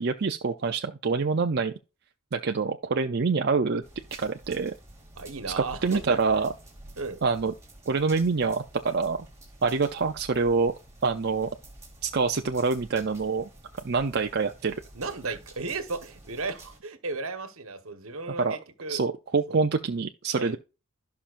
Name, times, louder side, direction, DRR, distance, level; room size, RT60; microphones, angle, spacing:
voice 1, 0.0-1.7 2.3-3.8 4.2-4.7 5.8-6.5 7.2-7.5 7.9-9.2 9.6-10.7 11.0-11.5 12.0-13.5 13.8-14.8 15.3-15.4 18.4-18.6 18.9-20.6, right 4 dB, 50° right, 0.6 m, -26 dB
sound 1, 3.8-16.8, right 1 dB, 15° right, 3.9 m, -50 dB
voice 2, 5.2-6.2 7.0-7.2 14.9-19.0 19.5-19.6 20.4-20.6, right 3 dB, 70° right, 1.4 m, -35 dB
16.0 x 5.9 x 2.6 m
head